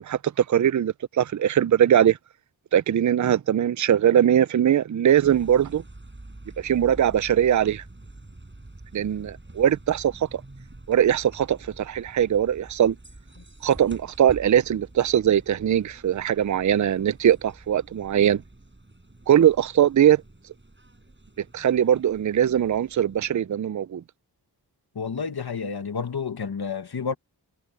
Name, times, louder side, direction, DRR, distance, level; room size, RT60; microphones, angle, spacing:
voice 1, 0.0-2.2 2.7-5.8 6.6-7.8 8.9-10.4 10.9-13.0 13.6-18.4 19.3-20.2 21.5-24.0, right 10 dB, 45° right, 0.5 m, -21 dB
sound 1, 5.0-23.5, right 2 dB, 30° right, 6.5 m, -47 dB
voice 2, 24.9-27.1, left 5 dB, 65° left, 1.6 m, -30 dB
wide cardioid pair, 55°, 41 cm